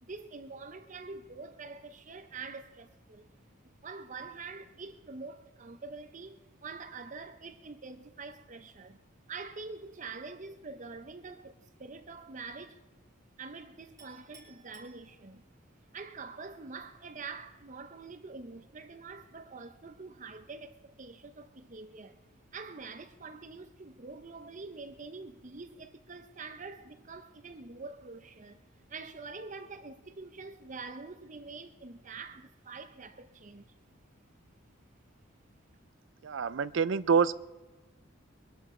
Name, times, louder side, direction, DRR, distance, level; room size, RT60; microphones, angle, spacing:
voice 1, 0.0-3.3 3.6-9.0 9.3-12.8 13.4-15.4 15.9-22.2 22.5-28.6 28.9-33.7, right 4 dB, 40° right, 0.8 m, -45 dB
Chink clink, 14.0-15.6, right 4 dB, 20° right, 4.2 m, -58 dB
voice 2, 36.2-37.3, right 6 dB, 65° right, 0.4 m, -26 dB
23.0 x 11.5 x 4.4 m
head